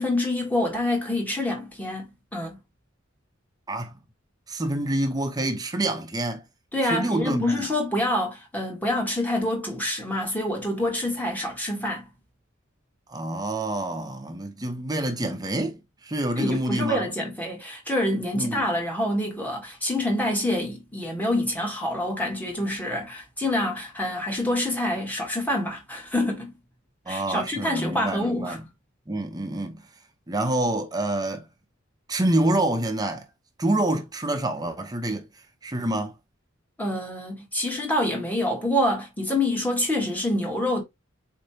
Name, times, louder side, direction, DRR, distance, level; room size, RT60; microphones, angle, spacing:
voice 1, 0.0-2.6 6.7-12.1 16.4-26.6 27.1-28.6 36.8-40.8, left 1 dB, 10° left, 1.4 m, -26 dB
voice 2, 4.5-6.4 6.8-7.6 13.1-17.0 18.3-18.6 27.1-28.6 29.1-29.8 30.3-31.4 32.1-33.3 33.6-35.3 35.6-36.2, right 1 dB, 20° right, 0.8 m, -27 dB
4.4 x 3.2 x 2.7 m
head